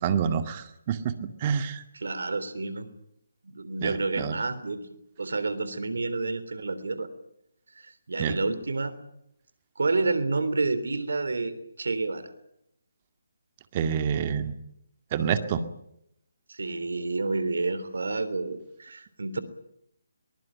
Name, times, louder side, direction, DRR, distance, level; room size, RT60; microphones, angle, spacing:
voice 1, 0.0-1.8 3.8-4.4 8.2-8.4 13.7-14.5 15.1-15.6, right 7 dB, 30° right, 9 dB, 2.1 m, -27 dB
voice 2, 2.0-2.9 3.4-4.8 5.2-7.1 7.8-8.9 9.8-12.3 16.5-19.4, right 3 dB, 70° right, 13 dB, 3.4 m, -29 dB
22.5 x 20.5 x 8.8 m, 0.77 s
figure-of-eight pair, 155°, 0 cm